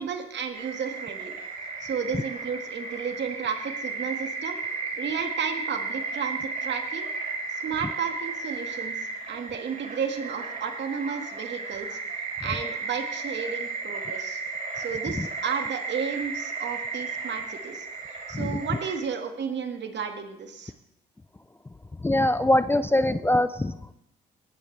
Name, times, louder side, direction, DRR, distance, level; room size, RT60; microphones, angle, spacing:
voice 1, 0.0-1.3 1.8-4.6 5.0-7.1 7.6-9.0 9.3-12.0 12.4-14.4 14.8-17.9 18.3-20.7, right 6 dB, 60° right, 5 dB, 1.8 m, -32 dB
sound 1, 0.5-19.0, right 4 dB, 40° right, 3.6 m, -34 dB
voice 2, 22.0-23.9, left 1 dB, 10° left, 13 dB, 0.4 m, -23 dB
18.5 x 10.5 x 3.3 m, 0.81 s
cardioid pair, 75°, 21 cm